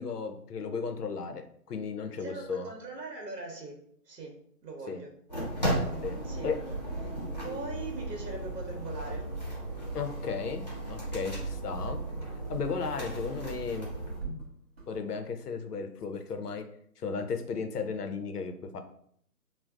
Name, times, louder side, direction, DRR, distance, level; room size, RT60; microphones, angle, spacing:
voice 1, 0.0-2.7 4.9-5.0 6.0-6.6 9.9-12.0 12.5-13.9 14.9-16.7 17.0-18.8, left 5 dB, 75° left, 7 dB, 0.6 m, -35 dB
voice 2, 2.2-3.8 4.1-4.3 4.6-5.1 6.2-6.5 7.0-7.1 7.4-9.2, right 3 dB, 85° right, 2 dB, 0.9 m, -40 dB
sound 1, 5.3-14.2, right 1 dB, 25° left, 0.6 m, -35 dB
sound 2, 11.0-11.6 12.1-13.0 13.2-15.2, right 3 dB, 40° right, 0.6 m, -45 dB
3.9 x 2.0 x 2.3 m, 0.66 s
figure-of-eight pair, 160°, 48 cm